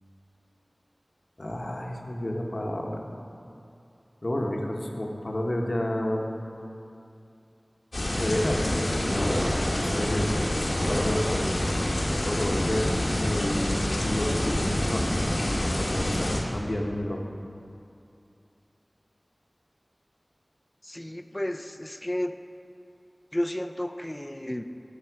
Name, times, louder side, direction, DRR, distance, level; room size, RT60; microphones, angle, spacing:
voice 1, 1.4-3.1 4.2-6.3 8.0-9.5 9.7-10.5 10.9-11.6 12.2-15.2 15.6-17.2, left 1 dB, 60° left, 1 dB, 1.0 m, -30 dB
sound 1, 7.9-16.4, left 1 dB, 85° left, 1.4 m, -27 dB
voice 2, 20.8-22.4 23.3-24.6, left 1 dB, 25° left, 8 dB, 0.5 m, -32 dB
15.0 x 5.5 x 4.6 m, 2.7 s
wide cardioid pair, 40°, 0 cm